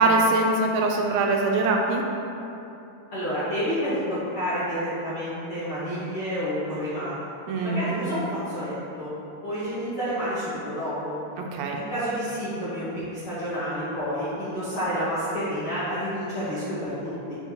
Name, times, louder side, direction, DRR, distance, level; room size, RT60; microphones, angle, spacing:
voice 1, 0.0-2.0 7.5-7.9 11.4-11.8, right 2 dB, 80° right, 1 dB, 2.2 m, -22 dB
voice 2, 3.1-7.3 7.6-9.1 9.4-11.2 11.7-12.9 13.1-17.4, equal, 60° left, -12 dB, 1.5 m, -29 dB
8.1 x 5.4 x 2.9 m, 2.9 s
omnidirectional pair, 4.2 m